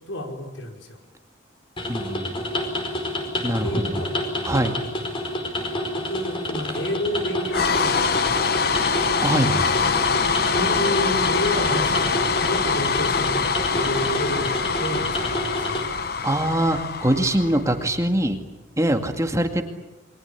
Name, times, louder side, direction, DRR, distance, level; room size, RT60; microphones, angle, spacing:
voice 1, 0.1-1.0 3.6-4.1 5.9-8.4 10.4-15.8, left 1 dB, 70° left, 3 dB, 5.2 m, -30 dB
sound 1, 1.8-15.8, left 1 dB, 25° left, 4.9 m, -29 dB
voice 2, 1.9-2.4 3.4-4.0 4.4-4.8 9.2-9.7 16.2-18.4 18.8-19.6, right 1 dB, 15° right, 5 dB, 2.1 m, -23 dB
sound 2, 7.5-17.8, left 5 dB, 50° left, 1.2 m, -24 dB
29.0 x 22.5 x 8.5 m, 1.1 s
head